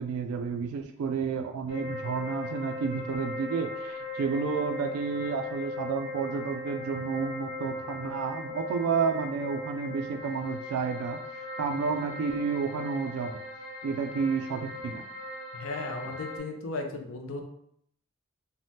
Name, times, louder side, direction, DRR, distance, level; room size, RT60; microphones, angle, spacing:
voice 1, 0.0-13.4 13.8-15.0, right 5 dB, 90° right, 4 dB, 0.3 m, -31 dB
sound 1, 1.7-16.4, left 3 dB, 30° left, 0.9 m, -39 dB
voice 2, 15.5-17.4, left 3 dB, 70° left, 4 dB, 0.4 m, -35 dB
3.3 x 2.1 x 2.7 m, 0.71 s
head